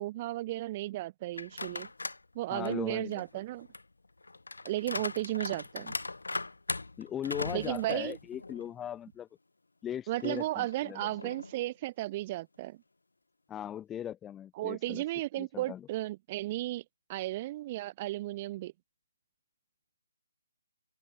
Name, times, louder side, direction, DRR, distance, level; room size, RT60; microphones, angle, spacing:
voice 1, 0.0-1.9 2.3-3.7 4.6-5.9 7.5-8.2 10.1-12.8 14.6-16.8 17.1-18.7, right 16 dB, 25° right, 0.7 m, -34 dB
sound 1, 1.3-2.2 2.7-8.7 9.1-9.2 10.2-11.7, left 3 dB, 85° left, 2.8 m, -40 dB
voice 2, 2.5-3.2 7.0-9.3 9.8-11.3 13.5-15.0 15.4-15.9, left 10 dB, 10° left, 0.3 m, -39 dB
open air
figure-of-eight pair, 155°, 0 cm